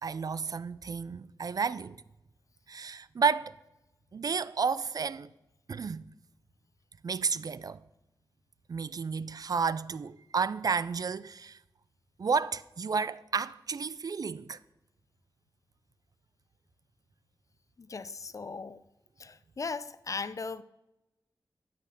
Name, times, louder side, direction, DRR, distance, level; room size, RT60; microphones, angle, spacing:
voice 1, 0.0-2.0 2.7-3.5 4.1-5.3 5.7-6.0 7.0-7.8 8.7-11.6 12.2-14.6, right 5 dB, 55° right, 0.4 m, -31 dB
voice 2, 17.8-18.8 19.2-20.6, left 4 dB, 45° left, 0.5 m, -38 dB
11.5 x 6.9 x 5.0 m
cardioid pair, 55°, 8 cm